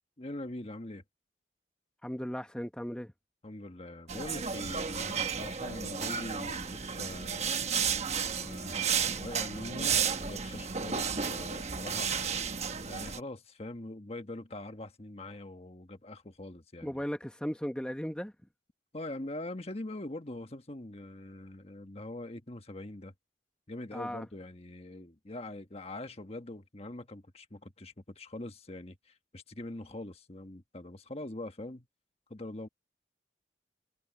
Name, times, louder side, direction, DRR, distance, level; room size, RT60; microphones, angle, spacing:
voice 1, 0.2-1.0 3.4-7.5 8.3-12.2 12.9-17.0 18.9-23.1 23.7-31.9 32.3-32.7, left 1 dB, 35° left, 1.4 m, -43 dB
voice 2, 2.0-3.1 16.8-18.3 23.9-24.3, equal, 5° left, 0.9 m, -36 dB
sound 1, 4.1-13.2, right 6 dB, 35° right, 1.1 m, -33 dB
head